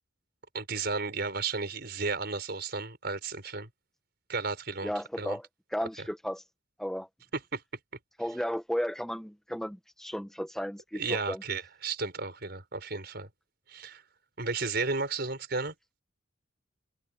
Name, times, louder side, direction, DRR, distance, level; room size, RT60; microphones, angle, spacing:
voice 1, 0.5-3.7 4.3-4.9 5.2-5.4 6.0-6.1 7.5-7.6 10.9-13.3 13.7-14.0 14.4-15.7, right 4 dB, 55° right, 5.4 m, -33 dB
voice 2, 4.8-6.4 6.8-7.1 8.2-11.4, equal, ahead, 1.1 m, -34 dB
head